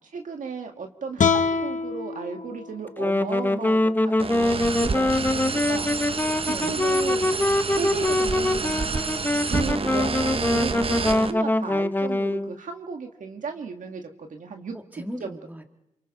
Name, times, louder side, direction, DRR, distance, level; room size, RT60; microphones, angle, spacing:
voice 1, 0.1-5.9 6.5-7.4 7.8-8.6 9.0-14.7 15.2-15.4, right 5 dB, 75° right, 4 dB, 1.8 m, -35 dB
sound 1, 1.2-4.4, left 5 dB, 70° left, 1.1 m, -27 dB
Wind instrument woodwind instrument, 2.9-12.6, left 1 dB, 15° left, 0.7 m, -24 dB
sound 2, 4.2-11.3, right 4 dB, 45° right, 0.9 m, -29 dB
voice 2, 6.4-6.9 10.0-11.0 14.7-15.6, equal, 15° right, 4 dB, 2.3 m, -40 dB
27.5 x 24.0 x 4.2 m, 0.85 s
cardioid pair, 50°, 13 cm